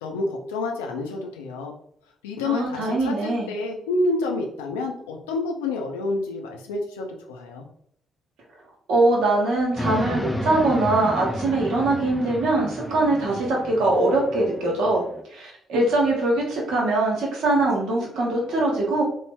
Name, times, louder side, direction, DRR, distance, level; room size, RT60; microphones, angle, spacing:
voice 1, 0.0-1.7 2.2-7.6, left 2 dB, 75° left, 1 dB, 0.4 m, -28 dB
voice 2, 2.4-3.5 8.9-15.0 15.3-19.0, right 2 dB, 65° right, -2 dB, 0.9 m, -22 dB
sound 1, 9.8-15.2, equal, 10° left, 0.5 m, -32 dB
3.1 x 2.0 x 3.4 m, 0.70 s
figure-of-eight pair, 40°, 0 cm